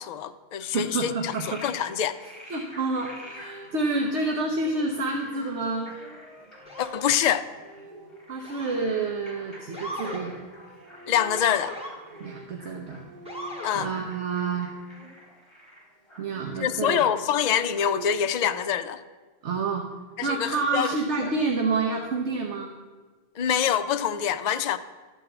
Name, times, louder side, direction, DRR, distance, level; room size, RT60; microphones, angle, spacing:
voice 1, 0.0-2.2 6.8-7.5 11.1-11.7 13.6-13.9 16.6-19.0 20.2-20.9 21.2-21.3 23.4-24.8, left 9 dB, 85° left, 0.3 m, -25 dB
voice 2, 0.7-1.6 2.5-5.9 8.3-10.3 12.2-13.0 13.7-14.7 16.2-17.1 19.4-19.8 20.2-22.7, right 3 dB, 65° right, 1.2 m, -28 dB
Frog, 1.0-18.4, equal, 20° left, 3.1 m, -50 dB
sound 1, 3.1-15.1 16.2-18.4, right 2 dB, 30° right, 2.1 m, -47 dB
Motor vehicle (road) / Siren, 6.7-7.0 8.4-9.0 9.7-10.2 11.3-11.9 13.3-13.8, equal, 5° right, 2.0 m, -37 dB
12.0 x 4.6 x 7.9 m
omnidirectional pair, 1.3 m